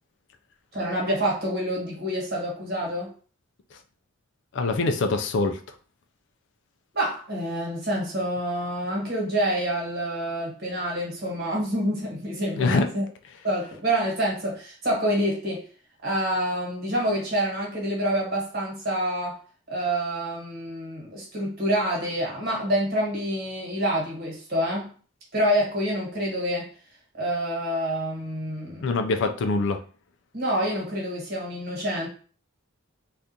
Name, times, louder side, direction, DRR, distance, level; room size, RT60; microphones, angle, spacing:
voice 1, 0.7-3.1 6.9-13.0 13.4-15.6 16.0-19.4 19.7-24.9 25.3-26.7 27.1-28.9 30.3-32.1, right 1 dB, 45° right, -3 dB, 1.4 m, -27 dB
voice 2, 4.5-5.6 12.6-12.9 28.8-29.8, left 3 dB, 60° left, 6 dB, 0.3 m, -24 dB
3.6 x 2.4 x 2.7 m, 0.40 s
head